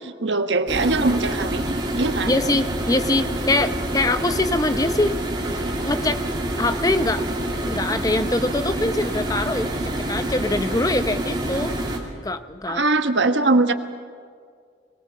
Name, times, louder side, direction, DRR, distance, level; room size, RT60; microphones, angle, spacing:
voice 1, 0.0-2.3 12.7-13.7, right 3 dB, 85° right, 8 dB, 1.2 m, -21 dB
sound 1, 0.7-12.0, right 1 dB, 25° right, 2.5 m, -27 dB
voice 2, 2.2-5.1 5.8-6.2 6.6-7.3 7.7-11.8 12.2-12.8, left 2 dB, 20° left, 11 dB, 0.7 m, -23 dB
21.5 x 19.0 x 7.4 m, 2.1 s
head